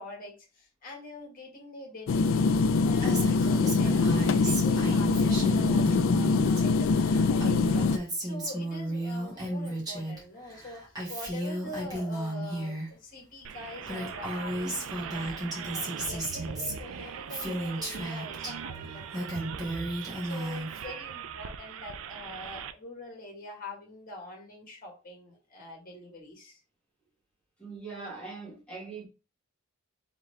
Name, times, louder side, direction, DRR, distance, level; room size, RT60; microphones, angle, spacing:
voice 1, 0.0-26.6, left 2 dB, 40° left, 1.6 m, -45 dB
sound 1, 2.1-8.0, left 4 dB, 65° left, 0.3 m, -24 dB
Female speech woman speaking, 3.0-6.6 6.9-10.2 10.5-12.9 13.5-13.6 13.8-18.5 18.9-20.9, right 1 dB, 20° right, 2.0 m, -34 dB
sound 2, 13.4-22.7, right 7 dB, 70° right, 0.4 m, -40 dB
voice 2, 27.6-29.1, right 4 dB, 5° left, 1.9 m, -41 dB
3.8 x 3.6 x 3.3 m
head